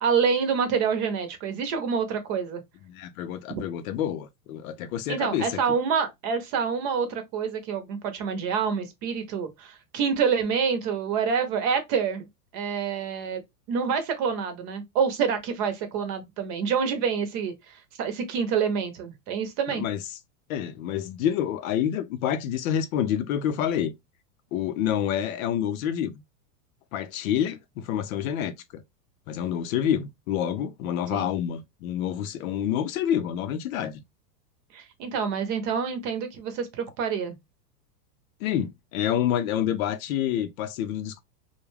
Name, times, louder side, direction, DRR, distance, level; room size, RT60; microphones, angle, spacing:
voice 1, 0.0-2.6 5.1-12.3 12.5-13.4 13.7-19.8 31.1-31.3 34.7-37.4, right 6 dB, 45° right, 0.8 m, -27 dB
voice 2, 2.9-5.5 19.7-20.0 20.5-23.9 24.5-26.1 26.9-28.8 29.3-34.0 38.4-41.2, left 10 dB, 60° left, 0.6 m, -28 dB
2.4 x 2.2 x 3.1 m
hypercardioid pair, 120°, 48 cm